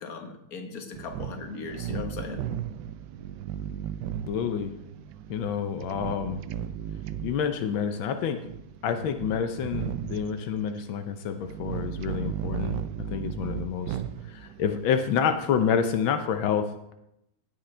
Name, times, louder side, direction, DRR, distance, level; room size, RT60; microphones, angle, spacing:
voice 1, 0.0-2.4, left 5 dB, 50° left, 4 dB, 1.8 m, -38 dB
sound 1, 0.9-16.0, right 10 dB, 70° right, 1.1 m, -36 dB
voice 2, 4.3-4.8 5.3-6.4 7.2-8.4 8.8-12.8 13.0-14.0 14.3-16.9, left 7 dB, 85° left, 8 dB, 1.6 m, -28 dB
16.5 x 8.9 x 3.3 m, 0.82 s
omnidirectional pair, 2.1 m